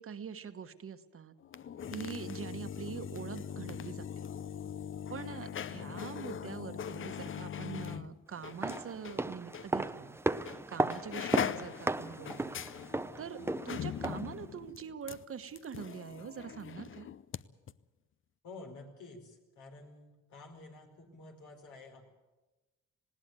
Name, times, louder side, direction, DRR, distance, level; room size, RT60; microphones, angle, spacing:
voice 1, 0.0-1.3 1.9-4.3 5.1-10.2 10.7-12.6 13.2-13.4 13.6-17.1, right 7 dB, 45° right, 9 dB, 1.3 m, -44 dB
sound 1, 1.4-9.2 9.5-9.7 10.4-10.6 10.9-17.4 17.7-17.8, left 8 dB, 45° left, 0.7 m, -41 dB
sound 2, 8.4-14.4 14.7-14.8, right 2 dB, 10° right, 0.6 m, -35 dB
voice 2, 18.4-22.1, left 3 dB, 75° left, 3 dB, 4.7 m, -51 dB
19.5 x 17.0 x 9.2 m, 1.1 s
cardioid pair, 90°, 30 cm